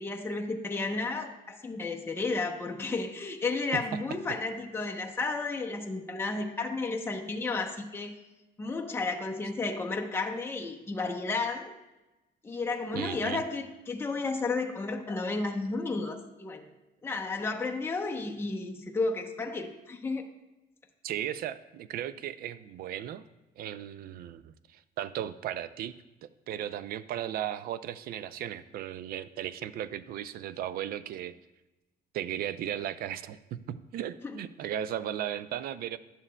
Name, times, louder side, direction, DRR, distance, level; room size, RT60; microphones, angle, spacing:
voice 1, 0.0-8.1 8.6-11.7 12.4-16.7 17.0-20.3 34.2-34.4, left 3 dB, 15° left, 1 dB, 0.8 m, -32 dB
voice 2, 12.9-13.4 21.0-23.3 23.6-25.9 26.2-31.3 32.1-36.0, right 11 dB, 60° right, 15 dB, 0.4 m, -36 dB
11.0 x 7.2 x 2.2 m, 1.0 s
cardioid pair, 110°, 17 cm